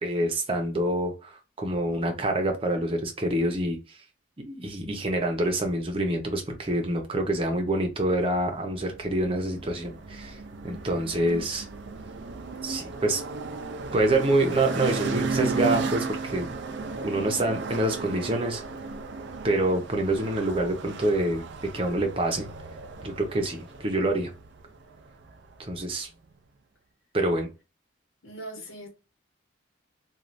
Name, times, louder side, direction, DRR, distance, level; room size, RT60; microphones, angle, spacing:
voice 1, 0.0-3.8 4.4-10.4 10.6-11.7 12.6-13.2 13.9-16.5 17.0-18.6 19.4-21.4 21.7-22.5 23.0-24.3 25.6-26.1 27.1-27.5, right 1 dB, 30° right, 0.7 m, -26 dB
sound 1, 8.4-25.8, right 4 dB, 65° right, 0.4 m, -35 dB
voice 2, 28.2-28.9, right 1 dB, 85° left, 1.1 m, -40 dB
3.1 x 2.4 x 2.5 m
head